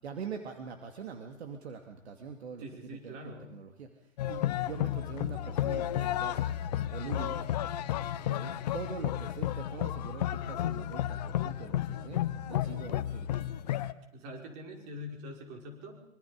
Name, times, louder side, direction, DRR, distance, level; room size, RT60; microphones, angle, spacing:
voice 1, 0.0-3.9 4.2-6.6 6.9-7.3 8.2-12.2 12.5-13.6, right 6 dB, 50° right, 5 dB, 2.7 m, -43 dB
voice 2, 2.6-3.5 7.0-7.6 14.1-16.0, equal, 30° right, 2 dB, 5.4 m, -44 dB
sound 1, 4.2-13.9, left 12 dB, 30° left, 0.9 m, -32 dB
26.0 x 25.0 x 5.2 m, 0.77 s
figure-of-eight pair, 125°, 40 cm